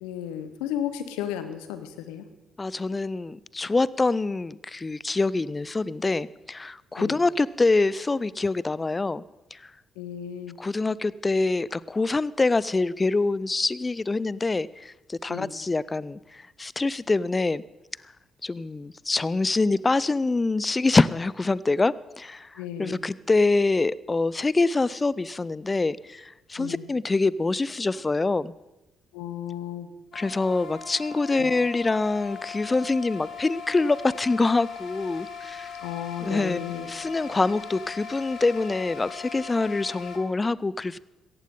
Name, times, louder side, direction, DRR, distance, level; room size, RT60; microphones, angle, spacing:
voice 1, 0.0-2.3 7.0-7.2 10.0-10.6 15.3-15.5 22.6-23.0 26.6-26.9 29.1-29.9 31.4-31.5 35.8-36.9, left 10 dB, 80° left, 10 dB, 1.0 m, -34 dB
voice 2, 2.6-9.2 9.5-9.6 10.6-17.6 18.4-22.5 22.8-28.5 30.1-35.7 36.2-36.6 36.9-41.0, left 3 dB, 30° left, 20 dB, 0.5 m, -25 dB
sound 1, 30.1-40.2, left 7 dB, 65° left, 2.0 m, -39 dB
17.5 x 14.5 x 3.8 m, 1.0 s
hypercardioid pair, 45°, 0 cm